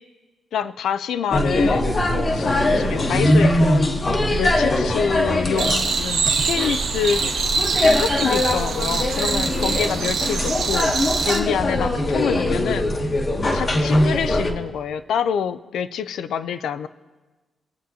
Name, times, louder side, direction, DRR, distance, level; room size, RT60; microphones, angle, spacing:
voice 1, 0.5-7.2 7.8-12.9 13.5-16.9, left 7 dB, 90° left, 12 dB, 0.4 m, -26 dB
sound 1, 1.3-14.5, left 1 dB, 35° left, 0.9 m, -21 dB
sound 2, 5.6-11.4, right 5 dB, 90° right, 0.9 m, -24 dB
22.0 x 7.6 x 2.7 m, 1.2 s
wide cardioid pair, 140°, 0 cm